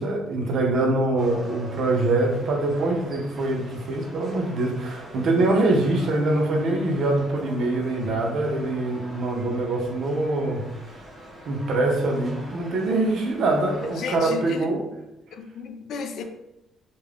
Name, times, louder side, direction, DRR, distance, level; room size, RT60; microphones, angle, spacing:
voice 1, 0.0-10.6 11.5-14.8, right 2 dB, 65° right, 1 dB, 0.6 m, -24 dB
sound 1, 1.2-14.2, right 1 dB, 30° right, 0.7 m, -43 dB
voice 2, 13.9-14.7 15.3-16.2, left 5 dB, 70° left, 6 dB, 0.3 m, -33 dB
2.4 x 2.2 x 3.3 m, 0.90 s
cardioid pair, 120°, 0 cm